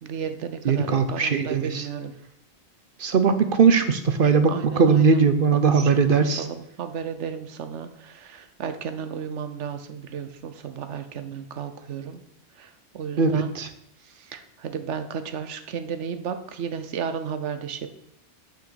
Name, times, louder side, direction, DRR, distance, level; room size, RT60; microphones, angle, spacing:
voice 1, 0.0-2.1 4.5-5.2 5.5-12.2 12.6-13.5 14.0-17.9, right 7 dB, 90° right, 9 dB, 1.1 m, -33 dB
voice 2, 0.7-1.8 3.0-4.5 4.8-6.4 13.2-13.7, right 5 dB, 55° right, 9 dB, 0.8 m, -19 dB
6.2 x 5.8 x 6.9 m, 0.78 s
omnidirectional pair, 1.2 m